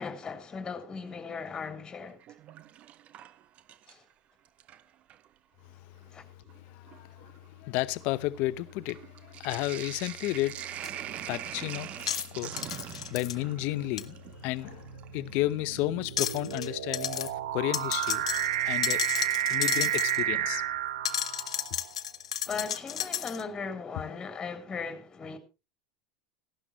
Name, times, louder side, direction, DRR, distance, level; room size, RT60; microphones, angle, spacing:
voice 1, 0.0-2.2 3.9-4.0 6.1-6.2 22.5-25.4, left 5 dB, 25° left, 3.0 m, -37 dB
Sink (filling or washing), 2.1-4.1 4.5-5.3 6.1-6.2 6.5-15.6 17.3-17.4 19.2-19.7 20.0-20.1 20.4-20.5, right 11 dB, 45° right, 0.8 m, -43 dB
voice 2, 6.7-7.3 7.6-10.6 11.3-11.9 12.3-14.1 14.4-14.9 15.1-18.2 18.6-19.0 19.5-20.6, left 17 dB, 60° left, 0.8 m, -32 dB
sound 1, 10.8-10.9 12.0-13.3 14.0-14.1 16.0-16.7 16.9-17.3 17.7-20.2 21.0-23.4, left 10 dB, 85° left, 1.0 m, -33 dB
sound 2, 12.4-12.8 13.6-21.9, right 12 dB, 80° right, 0.8 m, -32 dB
16.0 x 12.0 x 3.1 m
hypercardioid pair, 95°, 3 cm